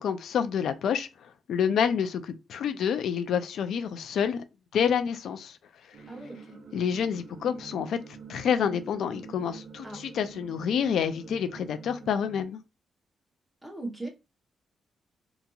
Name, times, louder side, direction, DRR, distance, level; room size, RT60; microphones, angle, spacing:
voice 1, 0.0-4.4 4.7-5.6 6.7-8.0 8.3-12.6, left 7 dB, 75° left, 0.3 m, -28 dB
sound 1, 5.9-12.4, right 5 dB, 60° right, 0.7 m, -46 dB
voice 2, 6.1-6.6 9.8-10.0 13.6-14.1, right 2 dB, 10° right, 0.9 m, -39 dB
2.8 x 2.6 x 2.3 m
cardioid pair, 115°, 0 cm